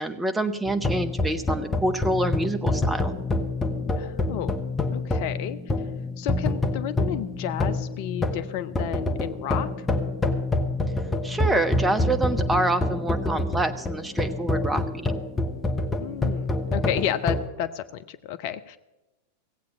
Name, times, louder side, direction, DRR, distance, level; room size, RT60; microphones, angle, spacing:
voice 1, 0.0-3.1 11.2-14.8, right 2 dB, 10° right, 8 dB, 0.9 m, -26 dB
sound 1, 0.6-17.5, left 2 dB, 15° left, 1.0 m, -27 dB
voice 2, 4.0-4.5 4.9-5.6 6.2-9.7 16.0-18.8, left 10 dB, 50° left, 11 dB, 0.6 m, -31 dB
16.5 x 8.3 x 6.5 m, 1.0 s
figure-of-eight pair, 90°, 0 cm